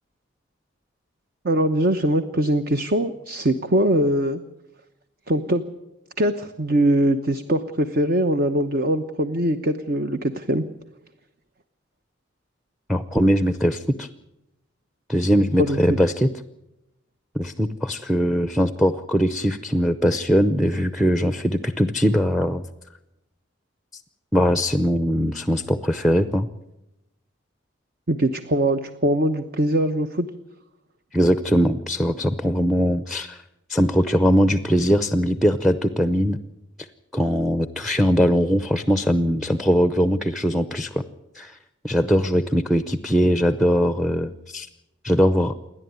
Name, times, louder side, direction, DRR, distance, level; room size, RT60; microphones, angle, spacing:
voice 1, 1.4-4.4 5.3-5.6 6.2-10.6 15.6-16.0 28.1-30.3, right 1 dB, 50° right, 9 dB, 1.0 m, -22 dB
voice 2, 12.9-14.1 15.1-16.3 17.3-22.6 24.3-26.5 31.1-33.4 33.7-36.4 37.1-41.0 41.3-41.6 41.8-44.7 45.0-45.6, equal, ahead, 11 dB, 0.7 m, -21 dB
28.5 x 11.0 x 9.4 m, 0.93 s
head